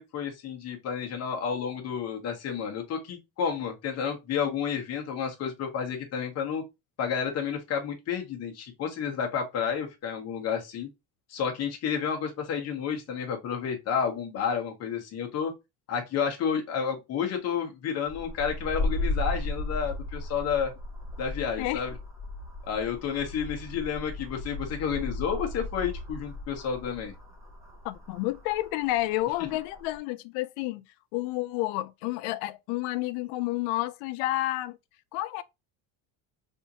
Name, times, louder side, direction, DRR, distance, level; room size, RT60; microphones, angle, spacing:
voice 1, 0.0-6.6 7.0-10.9 11.3-15.5 15.9-20.7 21.2-21.9 22.7-27.1, left 7 dB, 35° left, 1.0 m, -31 dB
sound 1, 18.1-30.0, left 2 dB, 5° right, 0.8 m, -36 dB
voice 2, 27.8-30.8 31.1-34.8 35.1-35.4, left 17 dB, 85° left, 0.5 m, -30 dB
3.5 x 2.6 x 2.8 m
cardioid pair, 160°, 42 cm